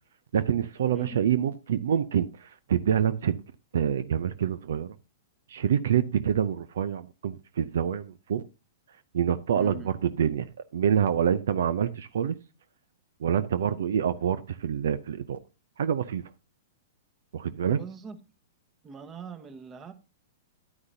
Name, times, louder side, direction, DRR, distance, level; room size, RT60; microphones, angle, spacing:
voice 1, 0.3-3.4 3.7-4.9 5.5-8.4 9.1-10.5 10.7-12.4 13.2-15.4 15.8-16.2 17.3-17.8, right 8 dB, 70° right, 0.6 m, -26 dB
voice 2, 9.5-9.9 17.7-18.2 18.8-19.9, right 4 dB, 25° right, 1.4 m, -42 dB
11.0 x 9.5 x 2.7 m
hypercardioid pair, 110°, 0 cm